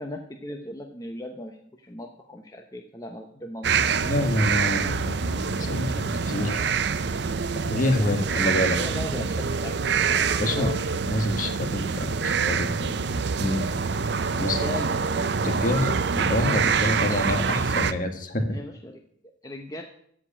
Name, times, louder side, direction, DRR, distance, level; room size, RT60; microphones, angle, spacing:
voice 1, 0.0-4.1 6.3-6.7 7.8-9.9 10.5-10.7 14.3-14.9 18.5-19.8, left 1 dB, 20° left, 2 dB, 0.9 m, -38 dB
sound 1, 3.6-17.9, right 5 dB, 60° right, 0.6 m, -26 dB
voice 2, 4.0-6.5 7.6-8.8 10.4-10.7 11.0-13.0 13.4-13.7 14.4-14.6 15.4-18.6, left 1 dB, 45° left, 5 dB, 1.5 m, -27 dB
14.5 x 5.0 x 8.8 m, 0.66 s
head